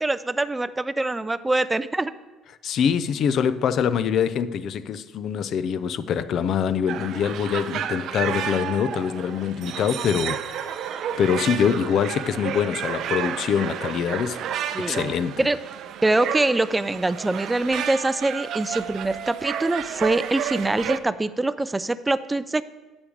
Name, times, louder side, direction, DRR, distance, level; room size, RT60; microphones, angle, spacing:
voice 1, 0.0-2.1 14.7-15.1 15.4-15.6 16.0-22.6, right 2 dB, 10° right, 0.4 m, -24 dB
voice 2, 2.6-14.4 14.8-15.4, left 7 dB, 50° left, 0.5 m, -24 dB
sound 1, 6.9-21.0, right 9 dB, 60° right, 0.6 m, -31 dB
9.6 x 7.1 x 5.2 m
cardioid pair, 130°, 0 cm